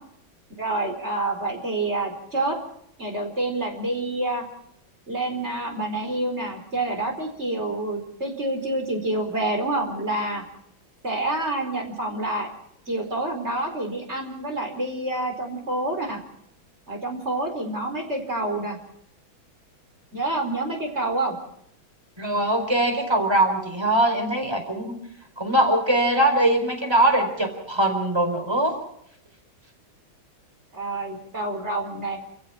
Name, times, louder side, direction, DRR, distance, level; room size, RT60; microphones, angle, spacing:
voice 1, 0.6-2.6 3.0-4.4 5.1-10.4 11.0-12.5 12.9-16.2 16.9-18.8 20.1-21.4 30.7-32.2, right 2 dB, 30° right, 4 dB, 4.8 m, -27 dB
voice 2, 22.2-25.0 25.4-28.8, right 1 dB, 10° right, 5 dB, 4.6 m, -22 dB
30.0 x 15.5 x 5.9 m, 0.73 s
omnidirectional pair, 2.2 m